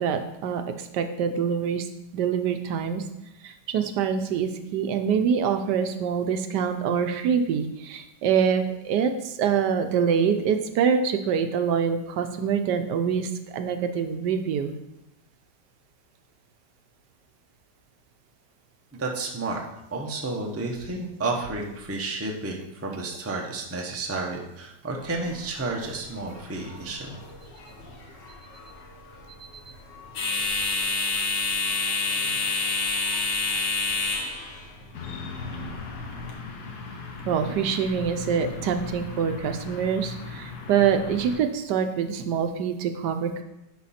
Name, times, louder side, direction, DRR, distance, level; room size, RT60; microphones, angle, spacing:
voice 1, 0.0-1.9 2.1-3.0 3.4-14.8 37.3-43.4, right 7 dB, 75° right, 7 dB, 1.2 m, -25 dB
voice 2, 18.9-19.6 19.9-27.2, right 3 dB, 15° right, 0 dB, 0.5 m, -31 dB
sound 1, 25.0-36.3, left 3 dB, 80° left, 1.9 m, -30 dB
sound 2, 34.9-41.4, left 4 dB, 65° left, 1.4 m, -38 dB
10.5 x 4.0 x 4.2 m, 0.89 s
omnidirectional pair, 1.9 m